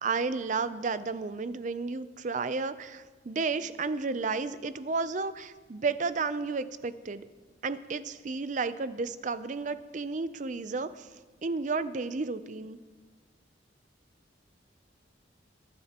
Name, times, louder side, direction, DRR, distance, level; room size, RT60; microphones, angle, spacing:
voice 1, 0.0-7.3 7.6-11.1 11.4-12.8, right 4 dB, 45° right, 13 dB, 0.5 m, -32 dB
22.5 x 11.0 x 2.9 m, 1.4 s
head